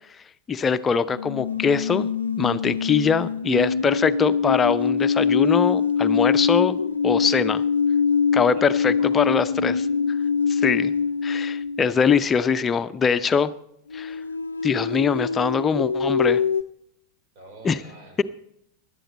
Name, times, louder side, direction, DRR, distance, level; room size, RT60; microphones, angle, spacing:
voice 1, 0.5-2.1 2.4-7.6 8.3-9.7 10.5-10.9 11.2-13.5 13.9-14.2 14.6-16.4 17.6-17.8, left 6 dB, 20° left, 14 dB, 0.6 m, -22 dB
sound 1, 1.1-12.1 13.9-16.6, left 6 dB, 75° left, 0.5 m, -24 dB
voice 2, 8.5-9.9 10.6-10.9 17.3-18.2, right 3 dB, 45° right, 6 dB, 4.2 m, -45 dB
17.0 x 11.5 x 4.2 m, 0.73 s
figure-of-eight pair, 90°, 0 cm